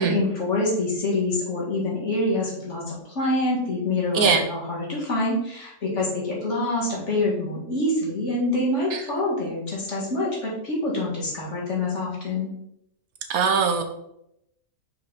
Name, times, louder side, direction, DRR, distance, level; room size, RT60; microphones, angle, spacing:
voice 1, 0.0-12.5, left 2 dB, 50° left, -4 dB, 2.3 m, -26 dB
voice 2, 13.3-13.8, right 6 dB, 70° right, 5 dB, 1.3 m, -21 dB
5.5 x 4.9 x 4.1 m, 0.79 s
omnidirectional pair, 1.6 m